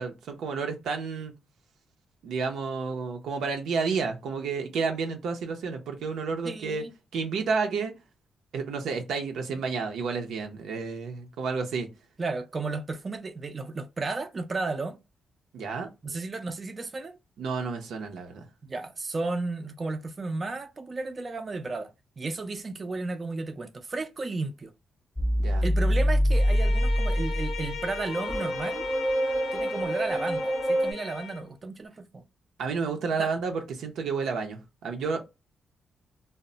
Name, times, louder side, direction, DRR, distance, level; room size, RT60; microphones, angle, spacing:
voice 1, 0.0-1.3 2.2-6.8 7.1-7.9 8.5-11.9 15.5-15.9 17.4-18.5 25.4-25.6 32.6-35.2, right 5 dB, 85° right, 0.5 m, -31 dB
voice 2, 6.4-6.9 12.2-15.0 16.0-17.2 18.6-24.7 25.6-28.9 29.5-32.2 33.2-33.3, right 3 dB, 30° right, 0.4 m, -33 dB
sound 1, 25.2-30.9, equal, 5° left, 0.7 m, -25 dB
Bowed string instrument, 26.3-31.5, left 6 dB, 80° left, 0.6 m, -38 dB
2.1 x 2.0 x 3.7 m
cardioid pair, 115°, 0 cm